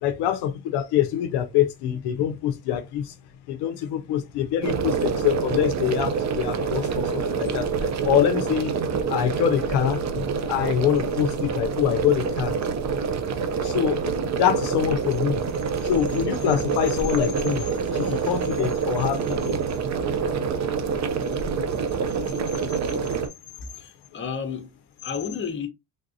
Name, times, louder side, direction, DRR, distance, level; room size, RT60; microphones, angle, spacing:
voice 1, 0.0-3.2 3.5-8.7 9.1-12.6 13.6-14.1 14.4-15.4 15.8-19.6, left 10 dB, 75° left, 0.5 m, -25 dB
sound 1, 4.6-23.3, right 5 dB, 45° right, 0.5 m, -26 dB
voice 2, 23.7-25.7, left 6 dB, 30° left, 0.8 m, -32 dB
3.4 x 2.6 x 2.5 m
cardioid pair, 115°, 40 cm